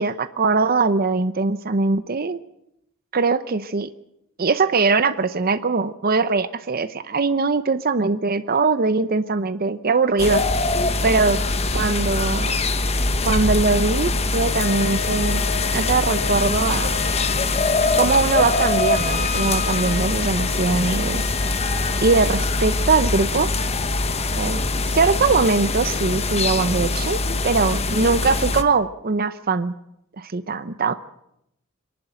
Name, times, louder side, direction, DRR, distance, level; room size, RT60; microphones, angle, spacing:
voice 1, 0.0-2.4 3.1-3.9 4.4-10.4 11.0-11.4 11.7-12.6 13.2-15.4 15.7-16.9 17.9-21.3 22.0-23.5 24.4-24.6 24.9-29.7 30.2-30.9, right 4 dB, 45° right, 12 dB, 0.7 m, -21 dB
sound 1, 10.2-28.6, left 2 dB, 30° left, 1.1 m, -23 dB
Wind instrument woodwind instrument, 14.5-22.4, left 6 dB, 50° left, 1.2 m, -33 dB
25.0 x 11.5 x 9.1 m, 0.81 s
head